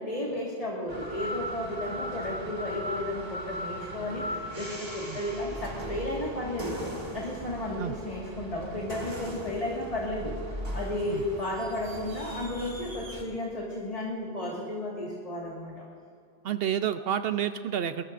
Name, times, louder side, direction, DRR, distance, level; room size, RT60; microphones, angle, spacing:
voice 1, 0.0-6.8 7.1-10.3 10.7-15.8, left 1 dB, 35° left, -4 dB, 2.0 m, -33 dB
sound 1, 0.9-13.2, equal, 40° right, 1.9 m, -38 dB
voice 2, 16.4-18.0, right 9 dB, 70° right, 10 dB, 0.7 m, -29 dB
21.5 x 20.0 x 2.6 m, 2.4 s
omnidirectional pair, 1.1 m